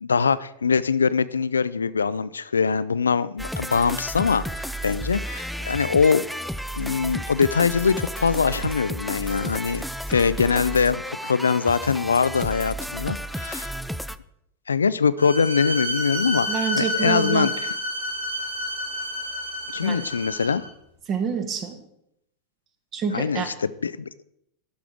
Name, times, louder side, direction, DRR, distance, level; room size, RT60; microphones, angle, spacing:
voice 1, 0.0-6.2 6.8-9.8 10.1-13.7 14.7-17.7 19.7-20.6 23.1-24.1, left 5 dB, 75° left, 16 dB, 0.3 m, -23 dB
sound 1, 3.4-14.2, right 1 dB, ahead, 0.4 m, -32 dB
Bowed string instrument, 15.2-20.7, equal, 85° right, 2.2 m, -29 dB
voice 2, 16.5-17.5 19.8-20.0 21.1-21.8 22.9-23.5, right 6 dB, 35° right, 7 dB, 1.4 m, -27 dB
11.5 x 6.0 x 4.9 m, 0.78 s
figure-of-eight pair, 85°, 0 cm